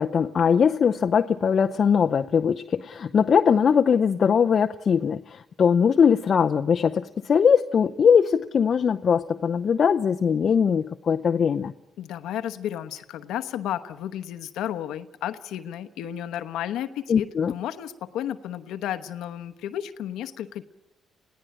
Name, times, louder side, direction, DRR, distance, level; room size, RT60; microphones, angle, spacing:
voice 1, 0.0-11.7 17.1-17.5, left 7 dB, 50° left, 7 dB, 0.7 m, -21 dB
voice 2, 12.0-20.6, left 11 dB, 85° left, 9 dB, 1.1 m, -33 dB
21.5 x 17.0 x 9.0 m, 0.99 s
cardioid pair, 90°, 0 cm